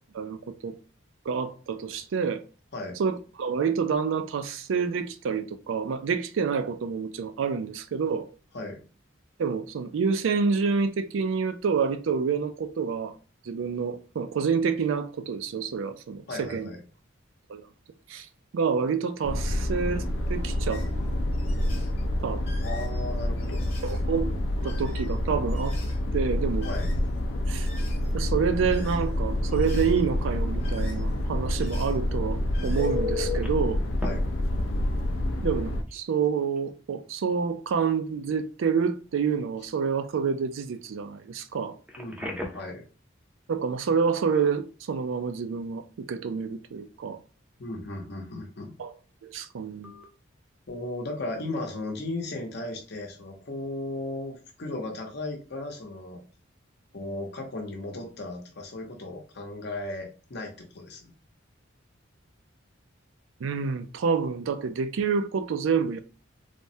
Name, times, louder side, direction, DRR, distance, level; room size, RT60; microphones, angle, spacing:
voice 1, 1.3-2.4 3.0-8.3 9.4-13.1 13.4-16.7 17.5-17.6 18.1-18.3 18.5-20.9 22.2-22.4 23.8-24.3 24.6-25.8 26.1-26.7 27.5-27.7 28.1-33.8 35.4-41.8 43.5-47.2 48.8-48.9 49.2-49.9 63.4-66.0, right 6 dB, 75° right, 0.4 m, -28 dB
voice 2, 16.3-16.8 22.6-23.7 26.6-26.9 34.0-34.2 42.0-42.9 47.6-48.8 50.7-56.2 56.9-61.1, left 2 dB, 55° left, 0.8 m, -36 dB
sound 1, 19.2-35.8, left 1 dB, 85° left, 0.5 m, -28 dB
sound 2, 20.7-20.9 21.3-22.0 22.4-24.0 24.5-25.1 25.5-26.0 26.5-27.2 27.5-28.1 28.6-29.1 29.5-30.0 30.4-31.2 31.5-32.0 32.3-32.9, left 4 dB, 35° left, 1.1 m, -48 dB
Telephone, 32.8-33.5 34.0-34.1 35.9-36.0 36.4-36.6 41.9-42.7 49.8-50.0, left 3 dB, 5° right, 0.4 m, -33 dB
3.3 x 2.1 x 2.6 m
head